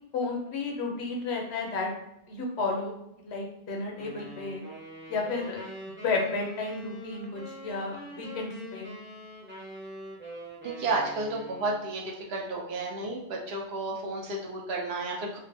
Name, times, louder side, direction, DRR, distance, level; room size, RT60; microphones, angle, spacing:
voice 1, 0.1-1.9 2.3-4.6 5.1-9.0, left 3 dB, 70° left, 1 dB, 0.8 m, -32 dB
sound 1, 4.0-11.9, equal, 15° right, 0.5 m, -44 dB
voice 2, 10.6-15.4, right 2 dB, 70° right, -1 dB, 0.8 m, -32 dB
2.5 x 2.1 x 2.6 m, 0.80 s
omnidirectional pair, 1.2 m